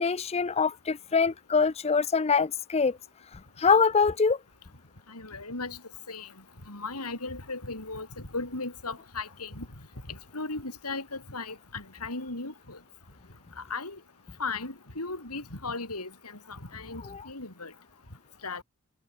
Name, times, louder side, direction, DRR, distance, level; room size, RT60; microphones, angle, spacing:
voice 1, 0.0-3.0 3.6-4.4 17.0-17.2, left 5 dB, 30° left, 0.5 m, -24 dB
voice 2, 5.1-5.8 6.1-6.3 6.7-9.7 10.1-12.8 13.6-14.0 14.4-17.7 18.4-18.6, left 3 dB, 90° left, 6.1 m, -37 dB
head